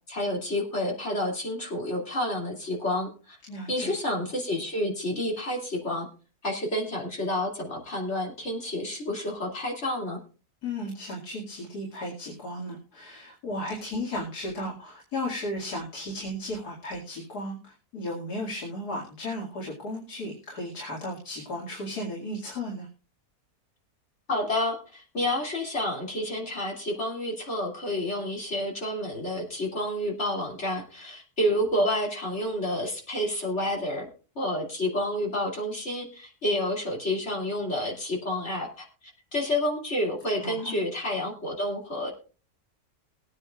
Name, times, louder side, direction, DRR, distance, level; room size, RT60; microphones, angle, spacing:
voice 1, 0.1-3.4 3.7-6.1 6.4-10.2 24.3-34.1 34.3-38.9 39.3-42.1, left 1 dB, 45° left, -1 dB, 3.1 m, -29 dB
voice 2, 3.5-3.9 10.6-22.9 40.4-40.8, left 1 dB, 90° left, -3 dB, 3.0 m, -35 dB
21.0 x 9.7 x 2.4 m, 0.36 s
omnidirectional pair, 1.6 m